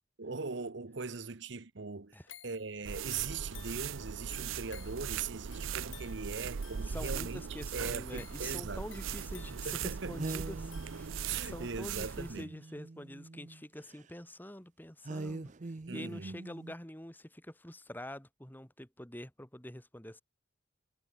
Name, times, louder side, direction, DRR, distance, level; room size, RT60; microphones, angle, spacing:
voice 1, 0.2-2.2 2.4-8.9 9.6-10.2 11.2-12.5 15.9-16.4, right 4 dB, 60° right, 0.9 m, -40 dB
sound 1, 2.3-11.5 12.0-12.1, left 11 dB, 70° left, 5.4 m, -56 dB
sound 2, 2.9-12.4, right 7 dB, 80° right, 0.6 m, -39 dB
voice 2, 6.9-9.7 10.1-15.5 15.9-20.2, left 1 dB, 10° left, 2.1 m, -46 dB
sound 3, 10.2-13.6 13.9-14.0 15.0-16.7, right 2 dB, 35° right, 0.6 m, -44 dB
head